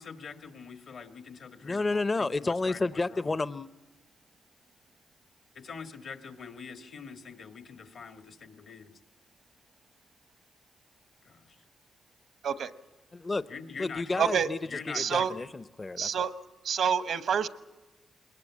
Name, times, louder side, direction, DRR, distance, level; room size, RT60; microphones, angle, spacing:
voice 1, 0.0-3.4 5.5-8.9 11.2-11.6 13.5-15.4, left 5 dB, 70° left, 6 dB, 2.0 m, -44 dB
voice 2, 1.6-3.7 13.1-13.4 13.8-14.6 14.9-16.3, left 3 dB, 35° left, 14 dB, 0.7 m, -31 dB
voice 3, 14.2-14.5 14.9-15.3 16.0-16.3 16.6-17.5, right 7 dB, 75° right, 12 dB, 1.0 m, -27 dB
21.5 x 20.5 x 8.5 m, 1.2 s
cardioid pair, 60°, 0 cm